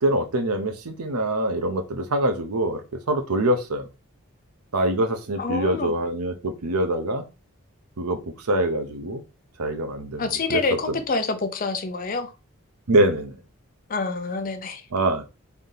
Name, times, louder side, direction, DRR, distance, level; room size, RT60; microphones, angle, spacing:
voice 1, 0.0-3.9 4.7-7.2 8.0-9.2 9.6-11.0 12.9-13.3 14.9-15.3, right 1 dB, 85° right, 0.7 m, -24 dB
voice 2, 5.4-5.9 10.2-12.3 13.9-14.8, left 3 dB, 40° left, 0.5 m, -27 dB
3.4 x 2.8 x 3.8 m
head